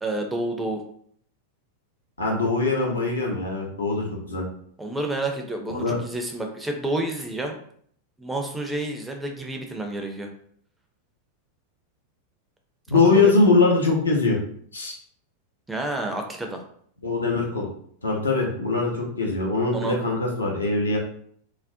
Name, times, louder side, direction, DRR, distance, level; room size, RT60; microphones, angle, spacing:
voice 1, 0.0-0.8 4.8-7.6 8.2-10.3 12.9-13.3 15.7-16.6 19.7-20.0, right 2 dB, 10° right, 3 dB, 0.4 m, -29 dB
voice 2, 2.2-4.4 5.7-6.0 12.9-14.4 14.7-14.9 17.0-17.7 18.0-21.0, left 3 dB, 75° left, -1 dB, 0.6 m, -22 dB
2.4 x 2.0 x 2.5 m, 0.62 s
figure-of-eight pair, 90°, 0 cm